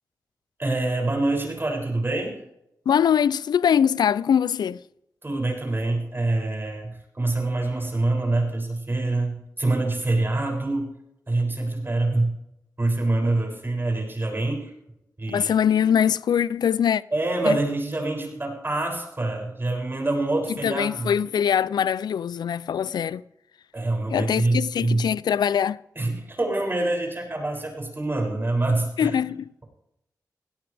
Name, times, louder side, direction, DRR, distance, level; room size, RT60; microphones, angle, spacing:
voice 1, 0.6-2.4 5.2-10.9 11.3-12.3 12.8-14.7 15.2-15.5 17.1-21.1 23.7-25.1 26.0-29.2, right 2 dB, 30° right, 7.0 m, -25 dB
voice 2, 2.9-4.8 15.3-17.0 17.5-17.6 20.6-23.2 24.1-25.8 29.0-29.5, left 8 dB, 85° left, 0.4 m, -22 dB
17.5 x 17.5 x 3.5 m
cardioid pair, 50°, 7 cm